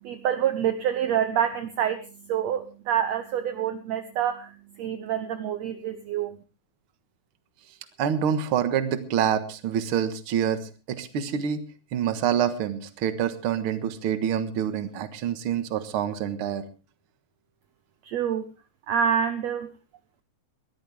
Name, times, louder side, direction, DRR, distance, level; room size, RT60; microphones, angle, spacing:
voice 1, 0.0-6.4 18.0-18.5 18.9-19.7, right 9 dB, 70° right, 9 dB, 1.9 m, -27 dB
voice 2, 8.0-11.6 11.9-16.6, right 9 dB, 50° right, 10 dB, 1.9 m, -26 dB
21.5 x 14.0 x 3.5 m, 0.32 s
omnidirectional pair, 3.7 m